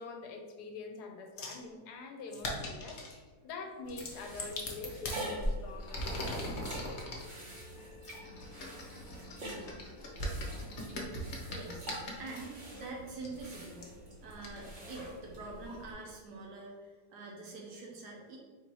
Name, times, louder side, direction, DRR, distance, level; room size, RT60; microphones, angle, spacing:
voice 1, 0.0-3.0 3.4-6.4, left 4 dB, 75° left, 4 dB, 1.1 m, -45 dB
sound 1, 1.4-1.6 2.3-3.2 3.9-5.2 5.8-7.2 8.0-12.4 13.2-13.3 13.8-13.9 14.4-14.5, left 2 dB, 50° left, 0.9 m, -41 dB
sound 2, 3.3-4.6 6.5-10.4, left 3 dB, 30° left, 0.4 m, -56 dB
sound 3, 3.8-15.9, right 1 dB, 40° right, 1.3 m, -43 dB
voice 2, 11.5-11.9 12.2-13.9 14.2-18.4, right 3 dB, 75° right, -1 dB, 1.2 m, -45 dB
4.2 x 2.7 x 4.5 m, 1.5 s
omnidirectional pair, 1.8 m